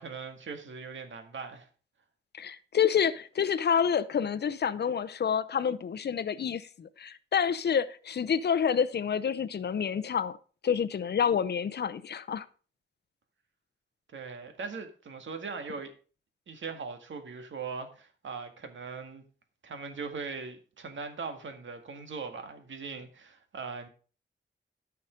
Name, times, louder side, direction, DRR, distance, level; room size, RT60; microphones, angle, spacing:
voice 1, 0.0-1.7 14.1-15.9 16.5-19.2 19.6-23.9, right 5 dB, 75° right, 2.0 m, -40 dB
voice 2, 2.3-10.3 10.6-12.4, left 7 dB, 60° left, 0.7 m, -28 dB
13.5 x 5.9 x 5.2 m
wide cardioid pair, 165°, 20 cm